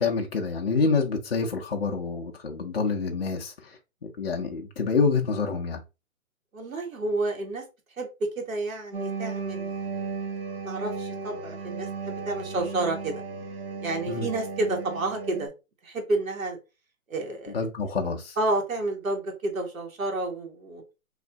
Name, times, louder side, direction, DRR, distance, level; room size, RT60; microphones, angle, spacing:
voice 1, 0.0-3.8 4.0-5.8 14.1-14.3 17.5-18.4, left 4 dB, 45° left, 0.5 m, -27 dB
voice 2, 6.5-7.6 8.0-9.7 10.6-13.2 13.8-15.5 15.8-16.6 17.1-17.5 17.8-17.9 18.4-20.8, right 2 dB, 75° right, 1.6 m, -30 dB
sound 1, 8.9-15.5, right 4 dB, 45° right, 0.6 m, -35 dB
3.2 x 2.6 x 3.8 m
hypercardioid pair, 175°, 41 cm